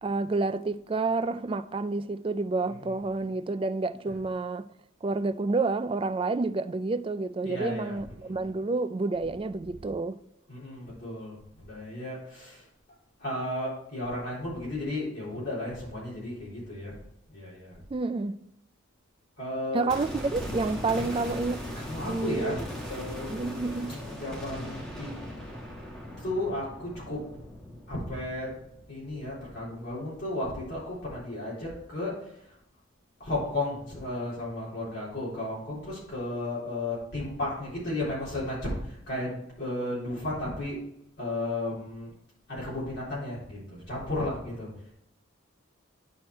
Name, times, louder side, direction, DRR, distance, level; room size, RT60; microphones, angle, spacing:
voice 1, 0.0-4.7 5.0-10.2 17.9-18.4 19.7-21.6 22.0-22.6 23.3-23.9, right 3 dB, 25° right, 0.3 m, -29 dB
voice 2, 7.4-7.9 8.2-8.3 10.5-12.6 13.2-16.9 17.3-17.8 19.4-19.9 21.8-22.6 22.9-25.2 26.2-27.2 27.9-28.5 28.9-32.4 33.2-40.8 41.2-42.1 42.5-44.7, left 1 dB, 55° left, 3.8 m, -34 dB
sound 1, 19.9-29.9 30.2-30.3, equal, 5° left, 1.5 m, -39 dB
10.5 x 4.4 x 4.7 m
head